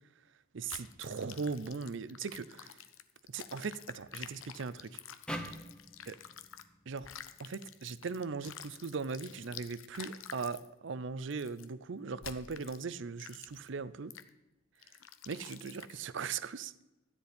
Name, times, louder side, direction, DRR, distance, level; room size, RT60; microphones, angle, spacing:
voice 1, 0.5-2.8 3.3-5.0 6.1-6.2 6.9-7.1 7.4-14.1 15.3-16.8, right 5 dB, 65° right, 0.6 m, -39 dB
sound 1, 0.7-6.7 7.0-10.7 11.3-11.7 12.2-12.8 13.2-13.7 14.1-14.3 14.8-16.1, left 9 dB, 85° left, 0.7 m, -49 dB
sound 2, 5.3-8.5, equal, 5° left, 1.0 m, -46 dB
13.0 x 9.9 x 5.1 m
head